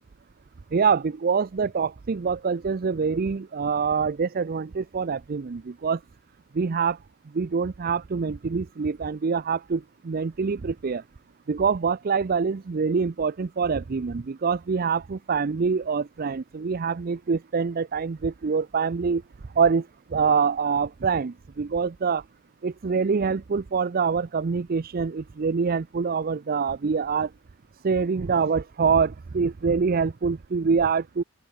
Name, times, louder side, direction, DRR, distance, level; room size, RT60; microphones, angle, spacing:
voice 1, 0.7-6.0 6.5-7.0 7.3-11.0 11.5-19.2 19.6-22.2 22.6-27.3 27.8-31.2, right 5 dB, 45° right, 0.5 m, -25 dB
open air
head